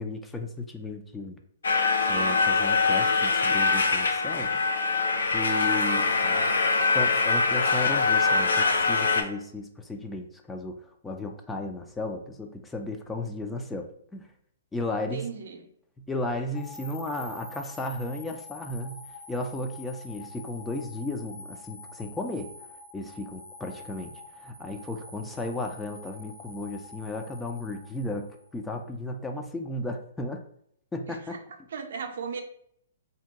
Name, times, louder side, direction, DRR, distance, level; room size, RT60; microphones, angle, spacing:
voice 1, 0.0-1.4 2.1-4.6 5.3-6.5 6.9-14.3 14.7-15.3 16.0-19.0 19.3-22.5 22.9-28.3 28.5-30.4 30.9-31.4, left 2 dB, 10° left, 3 dB, 0.3 m, -34 dB
sound 1, 1.6-9.2, left 4 dB, 75° left, 0.4 m, -23 dB
voice 2, 15.0-15.6 31.1-31.4 31.7-32.4, right 6 dB, 65° right, 5 dB, 0.5 m, -37 dB
sound 2, 16.5-28.7, left 3 dB, 50° left, 1.2 m, -47 dB
2.7 x 2.1 x 3.6 m, 0.69 s
hypercardioid pair, 125°, 0 cm